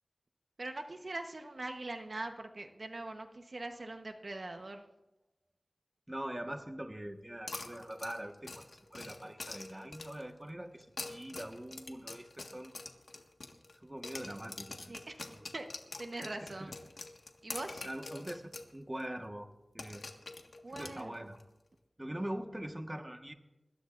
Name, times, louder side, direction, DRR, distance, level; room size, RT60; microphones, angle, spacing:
voice 1, 0.6-4.8 14.9-15.2 15.5-15.7 16.0-16.7 17.4-17.8 20.6-21.3, right 2 dB, 60° right, 4 dB, 1.1 m, -42 dB
voice 2, 6.1-8.6 8.9-12.7 13.8-14.9 15.3-15.4 16.5-16.7 17.8-19.5 19.7-20.0 20.8-21.4 22.0-23.3, right 1 dB, 20° right, 4 dB, 1.5 m, -43 dB
sound 1, 7.5-10.3 10.8-13.8 14.0-18.7 19.0-19.1 19.8-21.4, left 3 dB, 85° left, 1.6 m, -45 dB
24.0 x 21.0 x 2.6 m, 1.0 s
wide cardioid pair, 55°, 0 cm